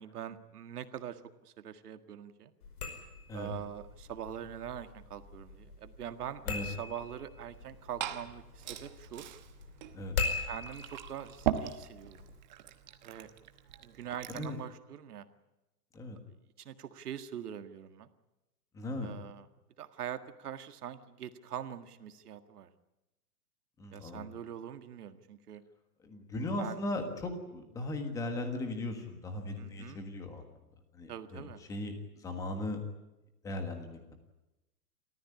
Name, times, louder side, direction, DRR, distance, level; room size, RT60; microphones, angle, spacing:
voice 1, 0.0-2.5 3.3-9.3 10.4-12.3 13.0-13.3 13.8-15.3 16.6-18.1 19.0-19.5 19.8-22.7 23.9-25.6 26.6-26.8 29.6-30.0 31.1-31.6, right 10 dB, 70° right, 10 dB, 1.8 m, -43 dB
sound 1, 2.6-12.4, left 4 dB, 65° left, 5.2 m, -41 dB
Liquid, 7.5-14.6, right 11 dB, 30° right, 1.0 m, -40 dB
voice 2, 18.7-19.1 23.8-24.2 26.0-30.4 30.9-32.8 33.4-34.1, left 2 dB, 5° left, 6 dB, 1.4 m, -38 dB
27.5 x 14.5 x 9.9 m, 1.0 s
hypercardioid pair, 175°, 48 cm